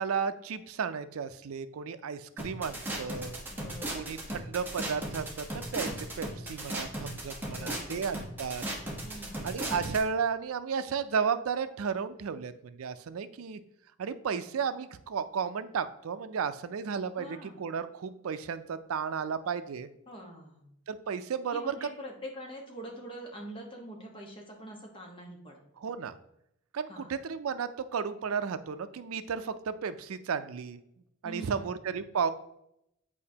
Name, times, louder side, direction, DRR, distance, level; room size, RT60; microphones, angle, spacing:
voice 1, 0.0-3.3 3.9-8.6 9.4-13.6 14.0-19.9 20.9-21.9 25.8-26.1 26.7-30.8 31.2-32.3, right 6 dB, 85° right, 12 dB, 0.4 m, -33 dB
sound 1, 2.4-10.0, right 1 dB, 10° right, 1.0 m, -36 dB
voice 2, 3.5-4.1 7.5-8.0 9.0-9.5 17.2-17.6 20.1-20.7 21.5-25.6 26.9-27.1 31.2-31.7, equal, 25° left, 0 dB, 1.2 m, -44 dB
8.4 x 4.9 x 2.8 m, 0.79 s
head